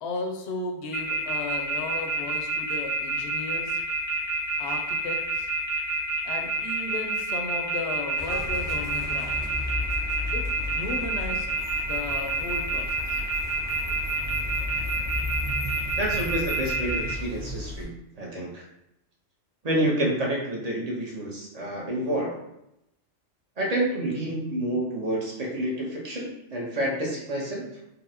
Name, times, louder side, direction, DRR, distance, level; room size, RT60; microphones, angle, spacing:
voice 1, 0.0-3.8 4.6-5.5 6.2-9.4 10.3-11.5 11.8-13.2, left 3 dB, 70° left, 3 dB, 0.8 m, -35 dB
sound 1, 0.9-17.1, right 4 dB, 15° left, 0.4 m, -28 dB
sound 2, 8.2-17.8, left 1 dB, 80° right, 1.2 m, -34 dB
voice 2, 16.0-17.9 18.2-18.6 19.6-22.4 23.6-27.7, right 1 dB, 40° right, -3 dB, 0.7 m, -28 dB
4.0 x 2.1 x 2.7 m, 0.84 s
omnidirectional pair, 1.2 m